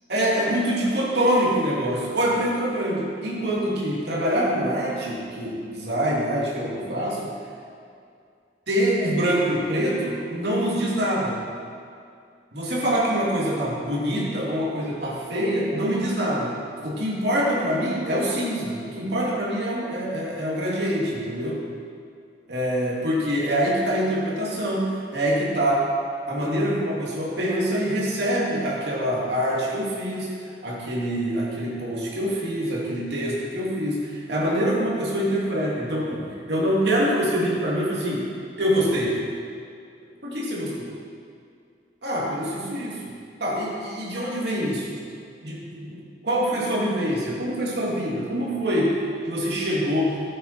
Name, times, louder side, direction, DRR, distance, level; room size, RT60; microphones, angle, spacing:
voice 1, 0.1-7.3 8.7-11.4 12.5-16.6 16.8-21.6 22.5-25.9 26.3-38.3 38.6-39.2 40.2-40.9 42.0-43.0 43.4-45.0 45.4-49.0 49.2-50.2, equal, 65° right, -5 dB, 2.6 m, -25 dB
12.5 x 8.5 x 4.4 m, 2.3 s
head